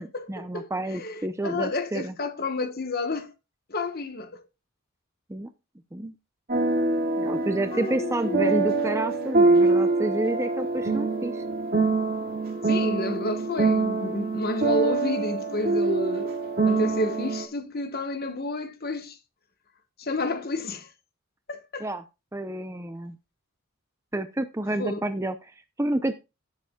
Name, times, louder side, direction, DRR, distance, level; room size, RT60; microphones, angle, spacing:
voice 1, 0.0-2.2 5.3-5.5 5.9-6.1 7.2-11.4 21.8-22.0 22.3-23.2 24.1-26.1, right 1 dB, 15° right, 0.5 m, -29 dB
voice 2, 0.5-3.3 3.7-4.4 7.7-8.4 12.6-16.3 16.7-19.2 20.0-20.9 21.5-21.9 24.8-25.1, left 2 dB, 45° left, 1.2 m, -30 dB
sound 1, 6.5-17.4, right 3 dB, 45° right, 2.1 m, -24 dB
17.5 x 7.0 x 2.3 m
head